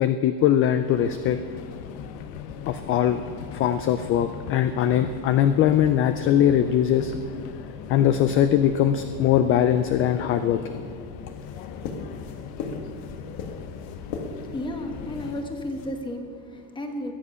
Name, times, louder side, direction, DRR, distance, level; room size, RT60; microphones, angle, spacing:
voice 1, 0.0-1.4 2.7-3.2 3.5-7.1 7.9-10.8, left 10 dB, 35° left, 10 dB, 0.4 m, -21 dB
Subway metro underground, 0.7-15.6, left 8 dB, 80° left, 0.9 m, -39 dB
sound 1, 6.7-15.9, left 4 dB, 60° left, 1.8 m, -40 dB
voice 2, 14.3-17.1, left 1 dB, 10° left, 4 dB, 1.1 m, -33 dB
21.5 x 7.4 x 5.6 m, 2.3 s
cardioid pair, 155°, 40 cm